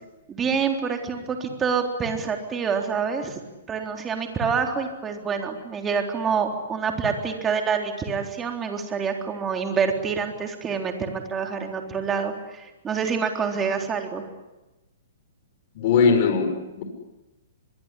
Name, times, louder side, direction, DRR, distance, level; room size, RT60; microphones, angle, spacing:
voice 1, 0.3-3.4 3.7-14.3, right 6 dB, 15° right, 3 dB, 3.8 m, -27 dB
voice 2, 15.7-16.8, left 5 dB, 45° left, 6 dB, 5.9 m, -20 dB
25.0 x 23.0 x 10.0 m, 1.0 s
hypercardioid pair, 155°, 0 cm